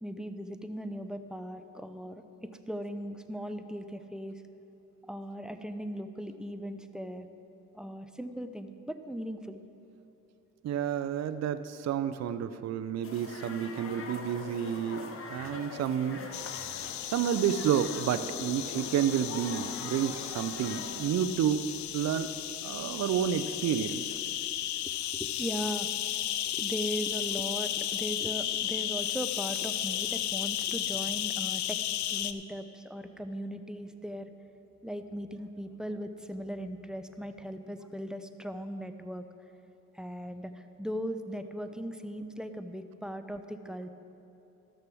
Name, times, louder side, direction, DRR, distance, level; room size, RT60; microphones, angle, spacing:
voice 1, 0.0-4.4 5.1-7.3 7.7-9.6 24.8-25.9 26.5-31.8 32.1-34.3 34.8-39.2 39.9-43.9, equal, ahead, 8 dB, 0.6 m, -38 dB
voice 2, 10.6-15.1 15.3-16.3 16.8-21.7 21.9-22.3 22.6-24.0, right 9 dB, 60° right, 11 dB, 0.6 m, -30 dB
sound 1, 13.0-21.1, left 4 dB, 45° left, 1.1 m, -43 dB
sound 2, 16.3-32.3, left 12 dB, 70° left, 0.5 m, -34 dB
13.5 x 6.5 x 6.2 m, 2.9 s
cardioid pair, 90°, 30 cm